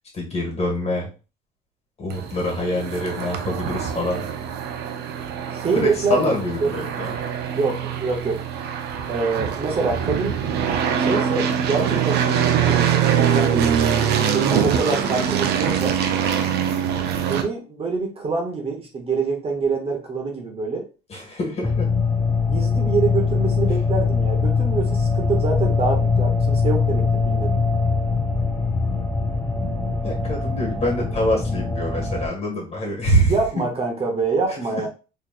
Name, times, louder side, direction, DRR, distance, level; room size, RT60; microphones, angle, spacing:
voice 1, 0.1-1.1 2.0-4.3 5.7-7.1 21.1-21.9 30.0-33.4 34.7-34.9, equal, 40° left, -1 dB, 1.9 m, -25 dB
sound 1, 2.1-17.4, right 8 dB, 75° right, 0.6 m, -23 dB
voice 2, 5.5-6.3 6.6-6.7 7.5-8.4 9.1-10.4 11.0-13.7 14.3-16.0 17.1-20.9 22.5-27.5 33.3-34.9, right 4 dB, 35° right, 1 dB, 1.0 m, -25 dB
sound 2, 21.6-32.3, left 4 dB, 10° left, 0.5 m, -22 dB
3.9 x 3.1 x 2.5 m, 0.33 s
cardioid pair, 110°, 17 cm